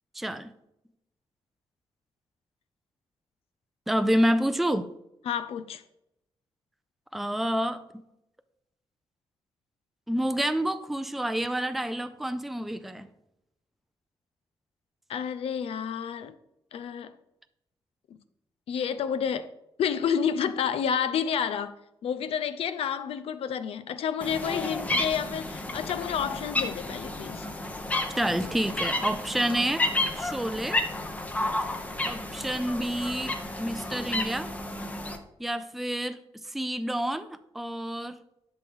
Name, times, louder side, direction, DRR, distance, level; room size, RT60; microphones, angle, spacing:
voice 1, 0.1-0.5 3.9-4.9 7.1-7.8 10.1-13.1 28.2-29.9 30.2-30.8 32.0-34.5 35.4-36.2 36.4-38.2, right 1 dB, ahead, 0.4 m, -28 dB
voice 2, 5.3-5.8 15.1-16.3 16.7-17.1 18.7-19.5 19.8-21.8 22.0-27.5, left 7 dB, 85° left, 0.6 m, -30 dB
sound 1, 24.2-35.2, left 2 dB, 15° left, 0.8 m, -32 dB
11.0 x 6.2 x 3.6 m
wide cardioid pair, 160°, 10 cm